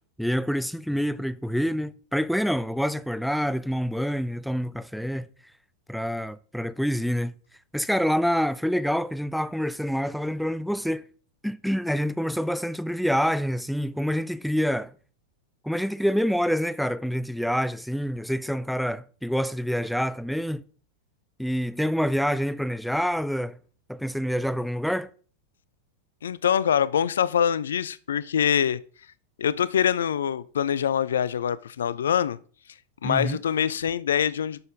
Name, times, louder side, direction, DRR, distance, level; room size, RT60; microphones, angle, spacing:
voice 1, 0.2-5.3 5.9-7.3 7.7-11.0 11.4-14.9 15.6-20.6 21.4-23.6 23.9-25.1 33.0-33.4, equal, ahead, 0.4 m, -27 dB
voice 2, 26.2-28.8 29.4-32.4 33.0-34.6, left 8 dB, 65° left, 0.4 m, -24 dB
10.5 x 6.5 x 3.5 m
figure-of-eight pair, 90°, 0 cm